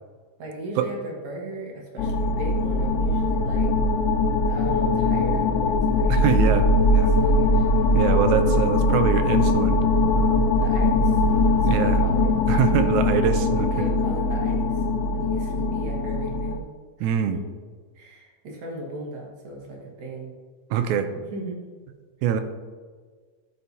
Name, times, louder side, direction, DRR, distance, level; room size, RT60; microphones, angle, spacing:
voice 1, 0.4-3.7 4.5-6.3 7.1-7.7 10.6-11.2 11.6-12.3 12.7-12.9 13.5-14.9 15.1-17.4 17.9-20.3 20.7-20.8 21.1-21.6, right 1 dB, 75° right, -2 dB, 2.8 m, -37 dB
sound 1, 2.0-16.6, left 2 dB, 80° left, 1.5 m, -21 dB
voice 2, 6.1-6.7 6.9-7.1 7.9-9.8 10.2-10.4 11.7-12.0 12.5-13.9 17.0-17.4 20.7-21.1 22.2-22.4, right 8 dB, 90° right, 9 dB, 2.0 m, -24 dB
13.0 x 5.5 x 2.8 m, 1.5 s
omnidirectional pair, 3.3 m